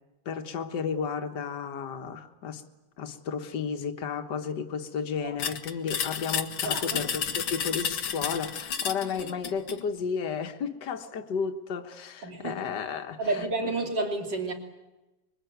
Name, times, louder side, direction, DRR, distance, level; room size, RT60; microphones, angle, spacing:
voice 1, 0.3-2.6 3.0-13.7, left 6 dB, 60° left, 2.0 m, -33 dB
sound 1, 5.4-9.8, left 7 dB, 90° left, 2.1 m, -31 dB
voice 2, 6.6-7.1 7.3-7.4 12.2-12.6 13.2-14.5, right 3 dB, 60° right, 3.8 m, -31 dB
26.0 x 23.0 x 9.3 m
omnidirectional pair, 2.2 m